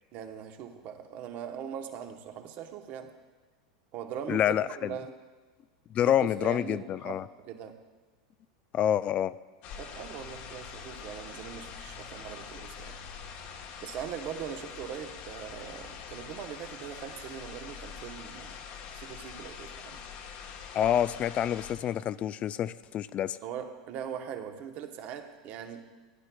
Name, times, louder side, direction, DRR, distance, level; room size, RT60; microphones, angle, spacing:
voice 1, 0.1-3.1 3.9-5.2 6.1-7.8 9.8-13.0 13.8-18.7 18.9-20.0 23.4-25.9, right 8 dB, 50° right, 6 dB, 1.0 m, -41 dB
voice 2, 4.3-5.0 5.9-7.3 8.7-9.3 20.7-23.4, left 10 dB, 35° left, 16 dB, 0.3 m, -27 dB
sound 1, 9.6-21.7, left 6 dB, 55° left, 1.1 m, -44 dB
16.0 x 10.5 x 2.3 m, 1.3 s
hypercardioid pair, 110°, 4 cm